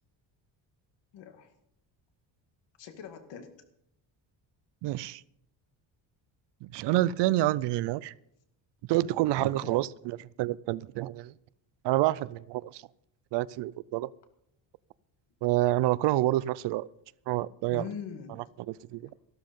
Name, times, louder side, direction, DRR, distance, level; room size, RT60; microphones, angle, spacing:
voice 1, 1.1-1.5 2.8-3.5 9.4-9.8 17.7-18.4, left 7 dB, 65° left, 2.3 m, -42 dB
voice 2, 4.8-5.2 6.6-8.1 8.9-11.3 11.8-12.8 13.3-14.1 15.4-16.9 17.3-17.8 18.7-19.1, right 16 dB, 65° right, 0.5 m, -28 dB
14.5 x 12.5 x 5.3 m
cardioid pair, 175°, 46 cm